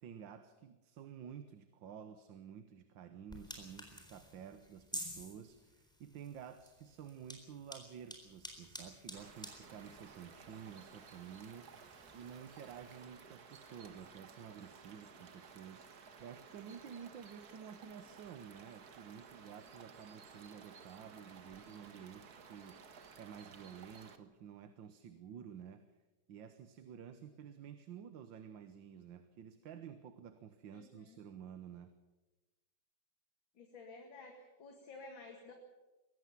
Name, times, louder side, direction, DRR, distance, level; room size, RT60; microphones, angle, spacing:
voice 1, 0.0-11.8 12.1-22.8 23.2-25.9 26.3-31.9, right 8 dB, 80° right, 10 dB, 1.8 m, -51 dB
sound 1, 3.3-13.0, equal, ahead, 3.9 m, -51 dB
sound 2, 9.1-24.2, right 6 dB, 55° right, 1.9 m, -56 dB
voice 2, 30.7-31.2 33.5-35.5, left 3 dB, 85° left, 2 dB, 2.9 m, -53 dB
22.5 x 17.5 x 7.2 m, 1.1 s
omnidirectional pair, 2.0 m